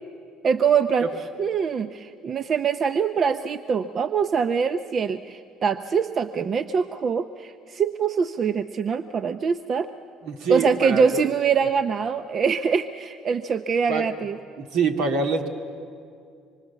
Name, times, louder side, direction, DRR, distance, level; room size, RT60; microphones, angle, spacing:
voice 1, 0.4-1.0 1.4-9.9 10.5-14.4, right 6 dB, 45° right, 10 dB, 0.7 m, -24 dB
voice 2, 10.2-11.3 13.9-14.1 14.6-15.5, right 5 dB, 75° right, 4 dB, 2.1 m, -25 dB
25.0 x 24.0 x 7.1 m, 2.4 s
supercardioid pair, 75°, 0 cm